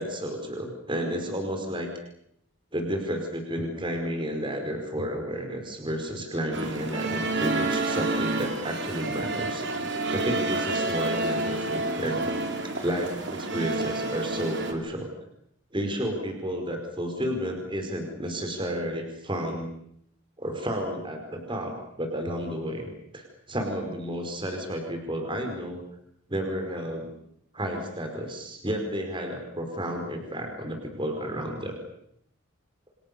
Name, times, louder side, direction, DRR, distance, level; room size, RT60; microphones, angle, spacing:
voice 1, 0.0-1.9 2.7-9.6 10.1-12.3 12.6-15.1 15.7-19.7 20.4-25.8 26.3-27.1 27.5-31.8, equal, 25° right, 4 dB, 5.1 m, -31 dB
sound 1, 6.5-14.7, right 2 dB, 55° right, 3.9 m, -29 dB
29.5 x 27.0 x 7.0 m, 0.71 s
head